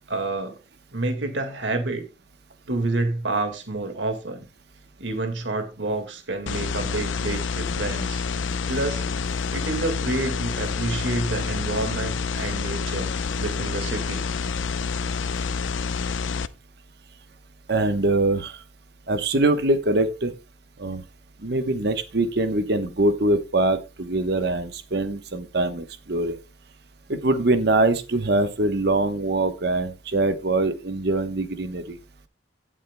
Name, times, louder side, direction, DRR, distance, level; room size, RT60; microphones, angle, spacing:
voice 1, 0.1-0.6 0.9-2.0 2.7-4.5 5.0-8.2 8.7-9.0 9.5-14.3, right 2 dB, 75° right, 1.8 m, -28 dB
sound 1, 6.5-16.5, left 5 dB, 90° left, 0.6 m, -28 dB
voice 2, 17.7-18.6 19.1-20.3 20.8-21.0 21.4-26.4 27.1-32.0, right 2 dB, 60° right, 1.0 m, -23 dB
17.0 x 7.4 x 2.2 m
head